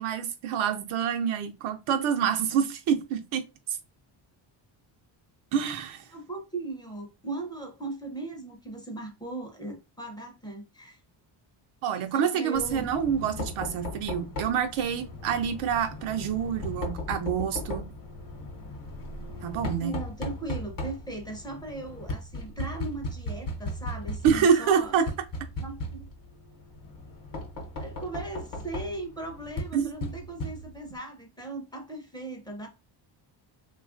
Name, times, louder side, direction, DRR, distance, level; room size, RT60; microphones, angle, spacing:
voice 1, 0.0-3.4 5.5-6.0 11.8-17.8 19.4-20.0 24.2-25.1 29.7-29.9, right 7 dB, 90° right, 0.6 m, -27 dB
voice 2, 6.1-11.0 12.1-12.9 19.8-24.9 25.6-26.1 27.8-32.7, right 2 dB, 10° left, 0.5 m, -38 dB
Knock, 12.5-31.0, left 1 dB, 45° left, 0.8 m, -37 dB
3.1 x 2.4 x 2.4 m
cardioid pair, 135°, 47 cm